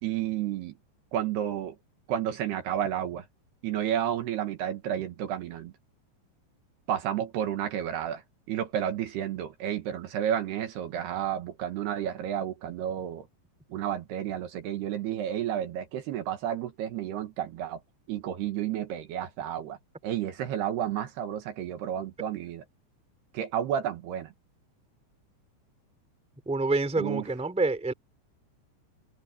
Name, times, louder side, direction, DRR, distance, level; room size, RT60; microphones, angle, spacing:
voice 1, 0.0-0.7 1.1-1.7 2.1-3.2 3.6-5.7 6.9-8.2 8.5-13.2 13.7-17.8 18.1-19.8 20.0-22.6 23.3-24.3 27.0-27.3, right 10 dB, 70° right, 3.2 m, -31 dB
voice 2, 26.4-27.9, right 3 dB, ahead, 2.2 m, -27 dB
omnidirectional pair, 5.3 m